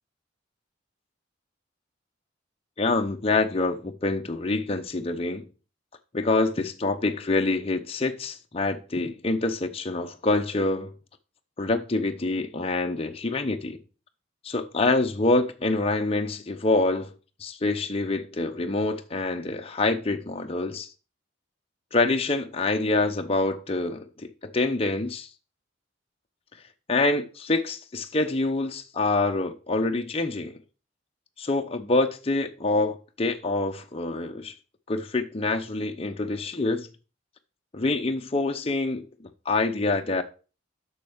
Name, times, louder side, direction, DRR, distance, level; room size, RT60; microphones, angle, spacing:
voice 1, 2.8-5.4 6.1-10.9 11.6-13.8 14.4-17.1 17.4-20.9 21.9-25.3 26.9-30.6 31.4-34.5 34.9-36.9 37.7-39.0 39.5-40.2, left 2 dB, 30° left, 0.7 m, -26 dB
7.4 x 6.4 x 5.1 m
head